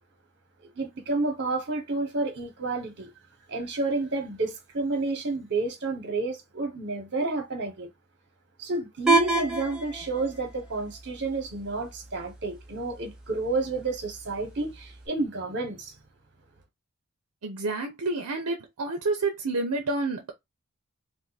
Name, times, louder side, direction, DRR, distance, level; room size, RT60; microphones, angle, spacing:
voice 1, 0.6-3.1 3.5-7.9 8.6-15.9, right 3 dB, 55° right, 1.1 m, -30 dB
sound 1, 9.1-15.1, right 3 dB, 5° right, 0.7 m, -31 dB
voice 2, 17.4-20.3, right 3 dB, 70° right, 0.7 m, -29 dB
2.6 x 2.6 x 4.0 m
head